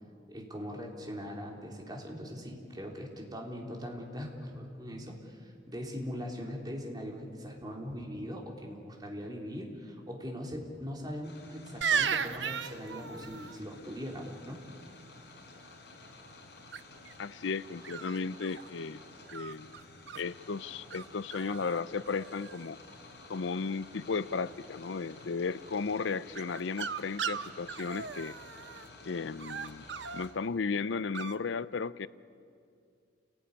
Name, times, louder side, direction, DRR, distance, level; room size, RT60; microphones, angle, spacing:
voice 1, 0.3-14.6, equal, 20° right, 0 dB, 3.6 m, -41 dB
sound 1, 11.2-30.3, left 2 dB, 65° left, 4.5 m, -52 dB
sound 2, 11.8-13.6 16.7-17.1 17.8-18.7 19.3-20.2 20.9-21.0 21.3-21.8 22.0-22.7 26.3-28.9 29.4-30.3 31.1-31.3, right 7 dB, 75° right, 0.9 m, -36 dB
voice 2, 17.2-19.0 19.3-19.7 20.2-22.8 23.3-28.4 29.1-29.9 30.1-32.1, left 4 dB, 80° left, 17 dB, 0.6 m, -35 dB
29.0 x 18.0 x 9.9 m, 2.4 s
head